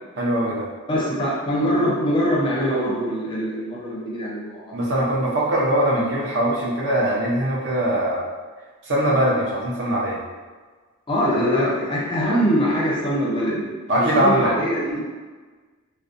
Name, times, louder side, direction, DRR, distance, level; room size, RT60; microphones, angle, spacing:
voice 1, 0.2-0.7 4.7-8.2 8.9-10.2 13.9-14.5, right 1 dB, 55° right, -5 dB, 0.6 m, -21 dB
voice 2, 0.9-4.9 11.1-13.7 14.0-15.0, equal, 20° left, -5 dB, 0.5 m, -23 dB
2.5 x 2.1 x 2.5 m, 1.4 s
head